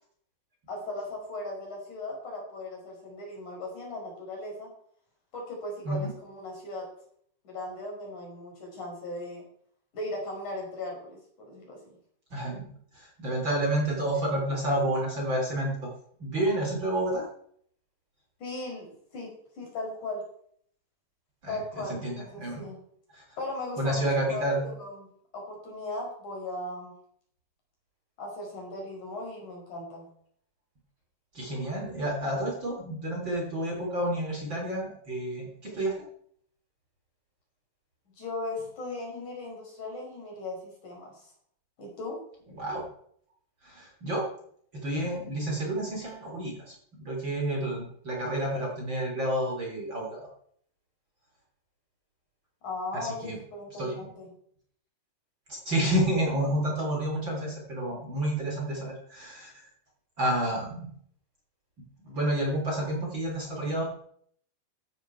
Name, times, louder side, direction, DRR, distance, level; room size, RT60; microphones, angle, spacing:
voice 1, 0.7-4.7 5.3-6.9 7.4-9.4 9.9-11.8 18.4-19.3 19.6-20.2 21.5-22.8 23.4-25.1 25.3-26.9 28.2-30.1 38.2-41.3 41.8-42.2 52.6-54.3, left 2 dB, 50° left, 0 dB, 6.3 m, -37 dB
voice 2, 12.3-15.9 16.2-17.3 21.4-22.7 23.1-23.2 23.8-24.6 31.3-35.9 42.6-42.8 43.6-44.2 44.8-50.3 52.9-53.4 53.8-54.1 55.5-59.7 60.2-60.9 62.0-63.8, right 1 dB, 30° right, -1 dB, 3.9 m, -30 dB
14.5 x 13.0 x 4.7 m, 0.63 s
omnidirectional pair, 4.6 m